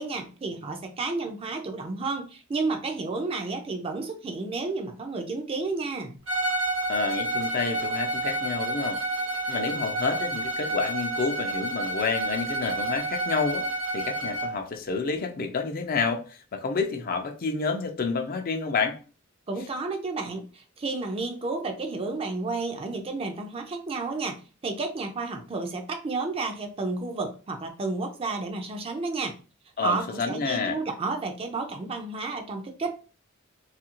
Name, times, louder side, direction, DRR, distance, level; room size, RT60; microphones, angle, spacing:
voice 1, 0.0-6.1 19.5-29.4 29.8-32.9, right 3 dB, 30° right, 0.4 m, -31 dB
Bowed string instrument, 6.3-14.6, right 2 dB, 80° right, 0.9 m, -29 dB
voice 2, 6.9-9.0 9.5-13.7 13.9-19.0 29.8-30.8, left 4 dB, 45° left, 0.4 m, -29 dB
2.7 x 2.4 x 2.9 m
head